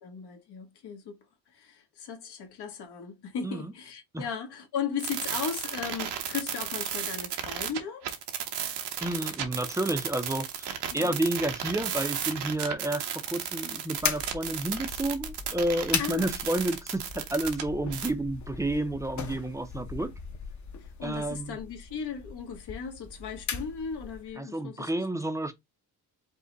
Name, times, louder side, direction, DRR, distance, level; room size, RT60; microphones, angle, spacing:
voice 1, 0.0-1.2 1.5-8.1 10.9-11.2 16.0-16.4 21.0-24.9, left 6 dB, 75° left, 1.3 m, -36 dB
sound 1, 5.0-17.6 17.9-18.1, right 9 dB, 85° right, 1.0 m, -34 dB
voice 2, 9.0-20.1 21.0-21.6 24.4-25.5, right 1 dB, 10° right, 0.5 m, -30 dB
sound 2, 14.0-24.3, left 6 dB, 45° left, 0.9 m, -38 dB
5.2 x 2.1 x 3.8 m
cardioid pair, 125°, 40 cm